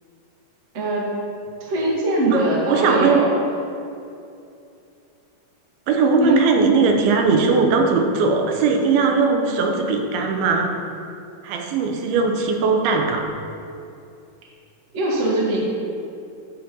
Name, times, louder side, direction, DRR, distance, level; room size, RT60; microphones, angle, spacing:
voice 1, 0.7-1.1 1.7-3.3 6.2-6.4 14.9-15.6, right 1 dB, 55° right, -5 dB, 0.8 m, -21 dB
voice 2, 2.3-3.2 5.9-10.7 11.4-13.3, right 4 dB, 85° right, 3 dB, 2.7 m, -19 dB
10.5 x 4.5 x 5.2 m, 2.6 s
omnidirectional pair, 4.1 m